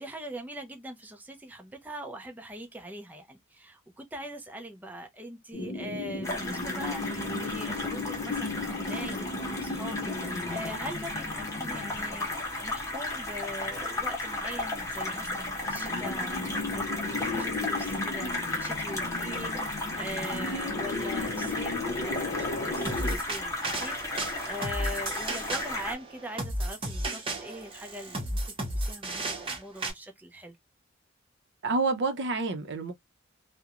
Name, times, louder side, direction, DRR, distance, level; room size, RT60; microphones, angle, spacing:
voice 1, 0.0-30.6, equal, 10° right, 0.5 m, -42 dB
sound 1, 5.5-12.8 13.1-13.2 13.5-14.0 14.6-23.2, left 3 dB, 40° left, 0.5 m, -36 dB
sound 2, 6.2-25.9, left 2 dB, 15° left, 0.9 m, -34 dB
sound 3, 22.9-29.9, right 1 dB, 25° right, 0.8 m, -34 dB
voice 2, 31.6-32.9, right 3 dB, 60° right, 0.6 m, -28 dB
2.4 x 2.1 x 2.8 m
head